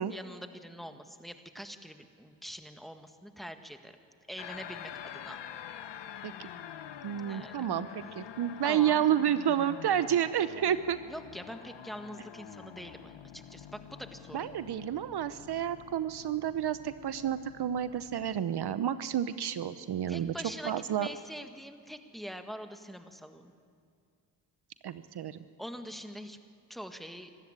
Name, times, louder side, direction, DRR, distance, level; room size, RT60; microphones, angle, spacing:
voice 1, 0.0-3.9 4.3-5.4 7.3-7.6 8.6-9.1 11.1-14.5 20.1-23.5 25.6-26.4 26.7-27.3, equal, ahead, 7 dB, 1.8 m, -44 dB
sound 1, 4.4-18.4, left 9 dB, 80° left, 1.0 m, -47 dB
voice 2, 7.0-11.0 14.3-20.3 20.6-21.1 24.8-25.4, right 10 dB, 65° right, 13 dB, 0.8 m, -30 dB
24.5 x 14.0 x 9.0 m, 2.2 s
cardioid pair, 60°, 43 cm